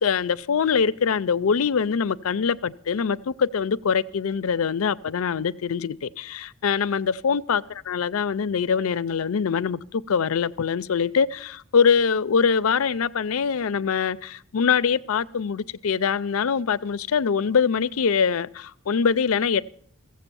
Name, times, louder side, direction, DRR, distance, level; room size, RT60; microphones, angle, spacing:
voice 1, 0.0-19.6, left 6 dB, 80° left, 0.5 m, -23 dB
15.5 x 7.7 x 6.9 m
head